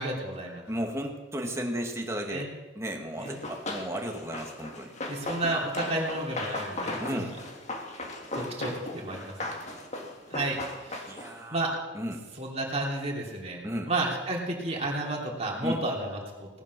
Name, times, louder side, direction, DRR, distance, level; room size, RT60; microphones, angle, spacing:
voice 1, 0.0-0.6 2.3-2.5 3.2-3.4 5.1-7.2 8.3-9.3 10.3-11.1 11.5-11.7 12.4-16.5, right 2 dB, 35° right, -1 dB, 3.1 m, -32 dB
voice 2, 0.7-4.9 7.0-7.3 11.1-11.6 11.9-12.2 13.6-13.9 15.6-15.8, equal, 15° right, 2 dB, 2.1 m, -34 dB
Run, 3.2-11.4, left 2 dB, 40° left, 2.0 m, -37 dB
18.5 x 11.0 x 6.3 m, 1.2 s
head